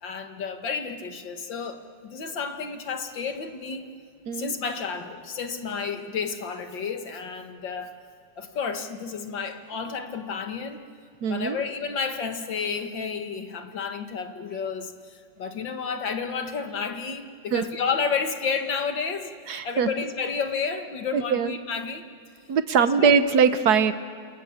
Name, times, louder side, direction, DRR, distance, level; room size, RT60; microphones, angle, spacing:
voice 1, 0.0-3.9 4.3-7.9 8.4-10.8 11.3-22.0 22.7-23.1, left 5 dB, 70° left, 6 dB, 2.4 m, -31 dB
voice 2, 11.2-11.6 17.5-17.7 19.5-19.9 21.1-21.5 22.5-23.9, right 6 dB, 60° right, 11 dB, 1.4 m, -21 dB
28.0 x 26.0 x 7.3 m, 2.4 s
omnidirectional pair, 2.1 m